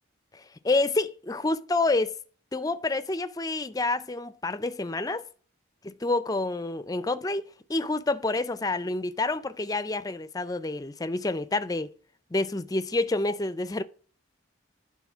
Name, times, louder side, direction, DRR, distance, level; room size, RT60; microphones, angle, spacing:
voice 1, 0.3-2.2 2.5-5.2 6.0-7.4 7.7-11.9 12.3-13.8, left 2 dB, 20° left, 0.4 m, -28 dB
10.5 x 4.1 x 6.1 m
head